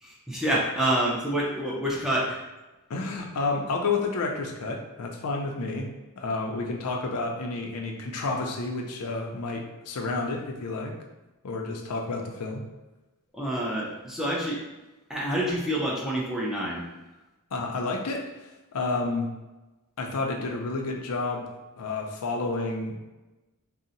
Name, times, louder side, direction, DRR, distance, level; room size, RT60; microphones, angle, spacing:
voice 1, 0.0-2.4 13.3-14.6 15.1-16.8, right 1 dB, ahead, -5 dB, 0.5 m, -27 dB
voice 2, 2.9-5.9 6.2-10.9 11.4-12.6 17.5-18.3 18.7-19.3 20.0-23.0, left 3 dB, 75° left, 1 dB, 0.5 m, -30 dB
2.7 x 2.0 x 3.9 m, 1.1 s
head